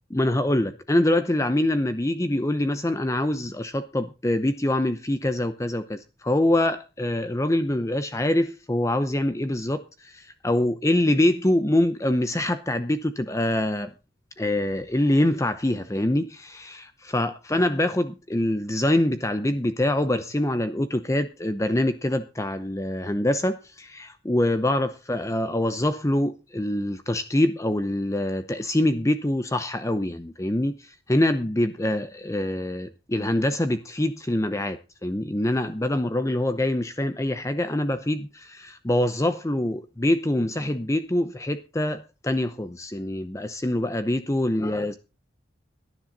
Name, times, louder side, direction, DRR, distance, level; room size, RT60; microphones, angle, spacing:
voice 1, 0.1-13.9 14.4-45.0, left 1 dB, 15° left, 0.7 m, -25 dB
18.0 x 10.5 x 4.0 m
head